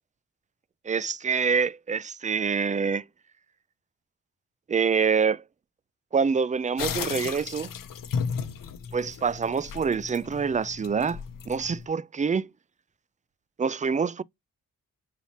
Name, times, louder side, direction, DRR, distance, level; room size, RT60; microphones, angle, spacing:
voice 1, 0.8-3.0 4.7-5.4 6.1-7.7 8.9-11.2 11.5-12.5 13.6-14.2, right 5 dB, 20° right, 0.4 m, -26 dB
sound 1, 6.8-11.9, left 6 dB, 70° left, 0.9 m, -34 dB
5.7 x 2.9 x 2.9 m
supercardioid pair, 45°, 34 cm